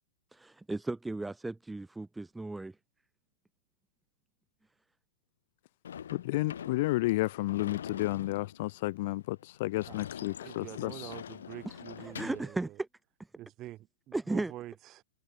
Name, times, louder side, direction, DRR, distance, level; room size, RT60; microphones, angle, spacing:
voice 1, 0.3-2.7 12.0-12.7 14.1-14.5, right 2 dB, 5° right, 0.6 m, -35 dB
Sliding door / Slam, 5.8-12.5, left 8 dB, 80° left, 1.5 m, -45 dB
voice 2, 6.1-11.1, left 19 dB, 55° left, 0.3 m, -32 dB
voice 3, 9.8-12.8 13.4-15.0, right 15 dB, 30° right, 6.4 m, -46 dB
hypercardioid pair, 130°, 0 cm